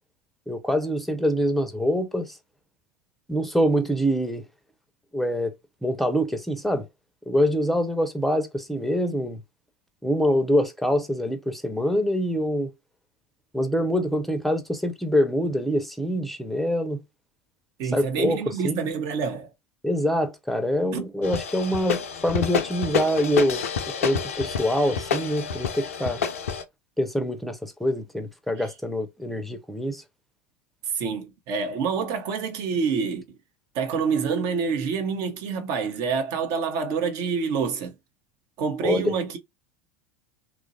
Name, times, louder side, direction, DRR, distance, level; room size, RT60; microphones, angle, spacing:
voice 1, 0.5-2.4 3.3-4.4 5.1-5.5 5.8-6.9 7.3-9.4 10.0-12.7 13.5-17.0 17.9-18.9 19.8-23.6 24.0-26.2 27.0-30.0 38.8-39.1, equal, ahead, 0.6 m, -25 dB
voice 2, 17.8-19.5 20.9-21.1 28.6-28.7 30.9-33.4 33.7-37.9 38.6-39.4, right 5 dB, 50° right, 0.8 m, -27 dB
sound 1, 21.2-26.6, left 6 dB, 75° left, 0.4 m, -28 dB
3.0 x 2.4 x 2.7 m
figure-of-eight pair, 75°, 8 cm